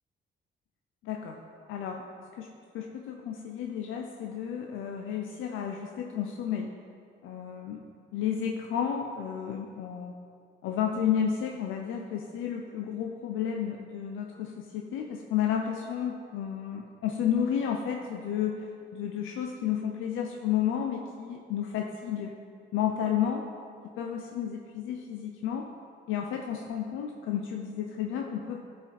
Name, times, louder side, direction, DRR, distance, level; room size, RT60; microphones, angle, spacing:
voice 1, 1.0-1.4 1.7-2.0 2.4-6.7 7.2-7.8 8.1-10.1 10.6-22.3 22.7-23.4 24.0-25.7 26.1-28.6, left 8 dB, 85° left, 2 dB, 0.6 m, -32 dB
11.5 x 5.1 x 4.0 m, 2.3 s
cardioid pair, 90°, 20 cm